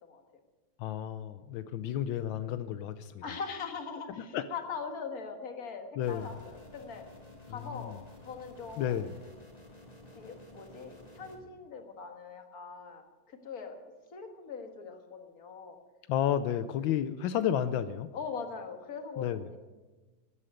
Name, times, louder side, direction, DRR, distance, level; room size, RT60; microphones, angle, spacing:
voice 1, 0.8-3.1 4.3-4.4 6.0-6.2 8.8-9.1 16.1-18.1 19.2-19.4, left 10 dB, 85° left, 11 dB, 1.4 m, -31 dB
voice 2, 3.2-7.1 7.5-9.0 10.1-13.8 14.1-15.8 18.1-19.6, left 5 dB, 50° left, 5 dB, 2.0 m, -41 dB
sound 1, 6.0-11.4, left 2 dB, 20° left, 2.3 m, -52 dB
13.5 x 9.9 x 9.3 m, 1.2 s
omnidirectional pair, 2.1 m